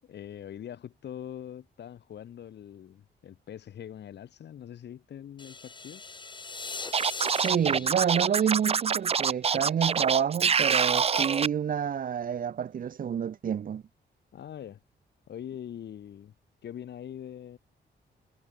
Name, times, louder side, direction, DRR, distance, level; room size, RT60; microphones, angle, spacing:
voice 1, 0.0-6.0 7.5-8.0 14.3-14.8 15.3-16.3 16.6-17.6, left 10 dB, 70° left, 7.2 m, -43 dB
sound 1, 5.4-9.5, left 4 dB, 25° left, 7.4 m, -41 dB
Scratching (performance technique), 6.9-11.5, right 6 dB, 35° right, 0.7 m, -25 dB
voice 2, 7.4-13.8, right 8 dB, 50° right, 1.1 m, -28 dB
cardioid pair, 125°, 18 cm